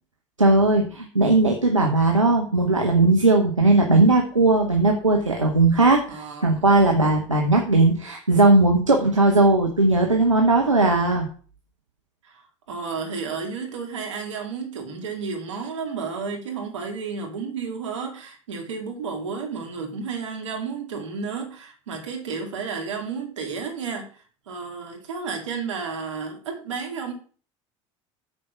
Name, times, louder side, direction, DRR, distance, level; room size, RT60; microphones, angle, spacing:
voice 1, 0.4-6.0 6.4-11.3, right 2 dB, 90° right, 1 dB, 1.0 m, -18 dB
voice 2, 6.1-6.9 12.2-12.4 12.7-27.1, right 5 dB, 75° right, 2 dB, 2.4 m, -32 dB
8.9 x 4.5 x 5.8 m, 0.41 s
figure-of-eight pair, 65°, 16 cm